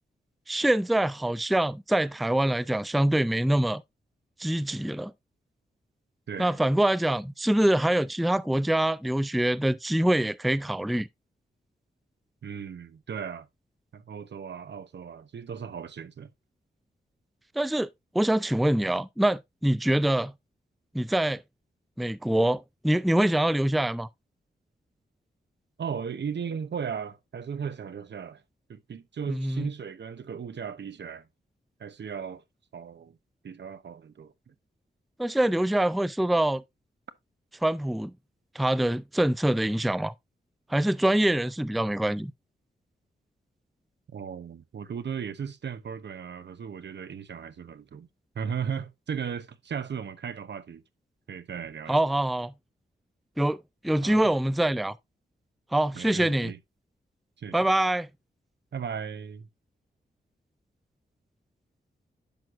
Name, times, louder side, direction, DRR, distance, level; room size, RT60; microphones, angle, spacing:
voice 1, 0.5-3.8 4.4-5.1 6.4-11.1 17.6-17.9 18.1-20.3 20.9-21.4 22.0-24.1 29.3-29.7 35.2-36.6 37.6-38.1 38.5-40.1 40.7-42.3 51.9-52.5 53.4-53.6 53.8-54.9 55.7-56.5 57.5-58.1, right 1 dB, ahead, 0.4 m, -24 dB
voice 2, 6.3-6.6 12.4-13.5 13.9-16.3 25.8-28.4 28.7-31.3 31.8-32.4 32.7-33.2 33.4-34.5 44.1-48.1 48.3-50.8 51.3-52.0 54.0-54.2 55.9-56.6 57.4-57.6 58.7-59.5, right 7 dB, 70° right, 0.9 m, -36 dB
10.5 x 6.3 x 2.5 m
wide cardioid pair, 95°, 19 cm